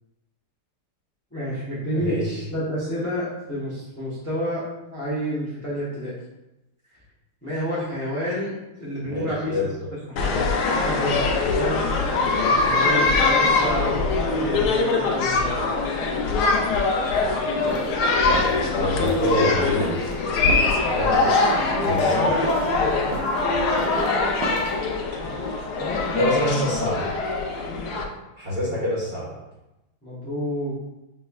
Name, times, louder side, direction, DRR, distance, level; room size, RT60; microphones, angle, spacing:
voice 1, 1.3-2.1 2.5-4.6 4.9-6.1 7.4-9.6 10.1-10.4 10.8-11.8 12.4-14.0 14.3-15.7 18.9-19.0 21.1-23.1 25.3-25.4 25.8-26.1 30.0-30.7, equal, 10° left, -8 dB, 0.7 m, -29 dB
voice 2, 1.9-2.4 9.0-9.7 18.7-20.0 20.7-21.2 21.8-22.4 25.2-25.5 26.1-27.0 28.4-29.3, equal, 30° right, -7 dB, 1.5 m, -26 dB
sound 1, 10.2-28.0, left 3 dB, 75° left, 0.9 m, -22 dB
sound 2, 17.4-24.8, right 3 dB, 65° right, 1.3 m, -34 dB
6.2 x 3.1 x 2.3 m, 0.96 s
omnidirectional pair, 2.3 m